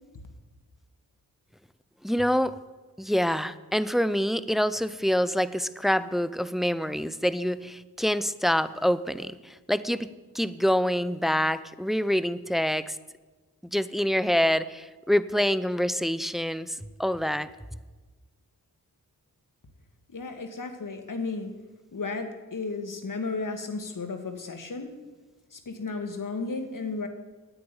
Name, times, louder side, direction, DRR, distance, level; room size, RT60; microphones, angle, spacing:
voice 1, 2.0-2.5 3.0-10.1 10.3-13.0 13.7-17.5, equal, ahead, 15 dB, 0.6 m, -26 dB
voice 2, 20.1-21.5 21.9-24.9 25.5-27.1, left 3 dB, 55° left, 6 dB, 1.9 m, -34 dB
9.9 x 8.6 x 9.7 m, 1.3 s
cardioid pair, 55°, 38 cm